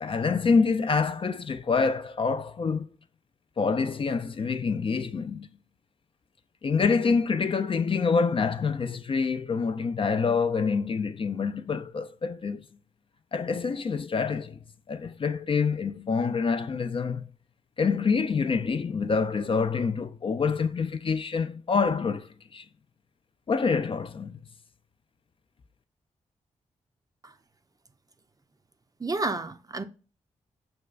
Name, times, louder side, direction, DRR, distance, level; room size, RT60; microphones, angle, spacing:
voice 1, 0.0-2.9 3.6-5.5 6.6-12.6 13.3-14.6 14.9-17.3 17.8-22.6 23.5-24.4, left 5 dB, 40° left, 0.4 m, -26 dB
voice 2, 29.0-29.8, right 3 dB, 25° right, 0.5 m, -30 dB
6.0 x 2.2 x 2.3 m
supercardioid pair, 45°, 14 cm